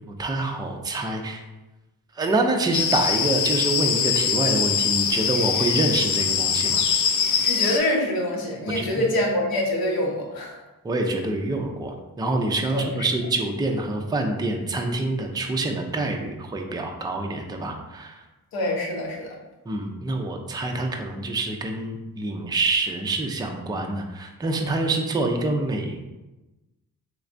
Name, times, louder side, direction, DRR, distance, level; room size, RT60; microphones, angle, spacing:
voice 1, 0.2-1.4 2.1-6.8 8.7-8.8 10.8-18.2 19.7-26.0, right 2 dB, 10° right, 3 dB, 0.4 m, -26 dB
sound 1, 2.7-7.8, left 7 dB, 55° left, 0.4 m, -23 dB
voice 2, 7.5-10.6 12.7-13.1 18.5-19.3, left 1 dB, 70° left, -1 dB, 0.9 m, -25 dB
3.2 x 3.2 x 2.5 m, 1.1 s
cardioid pair, 75°, 37 cm